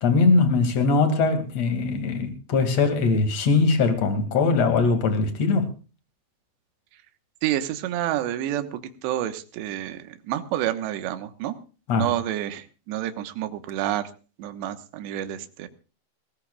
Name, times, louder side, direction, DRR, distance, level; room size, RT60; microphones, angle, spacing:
voice 1, 0.0-5.7 11.9-12.1, left 4 dB, 40° left, 2.9 m, -21 dB
voice 2, 7.4-11.6 11.9-14.0 14.4-15.7, right 12 dB, 75° right, 3.3 m, -29 dB
21.5 x 19.0 x 2.4 m
omnidirectional pair, 5.4 m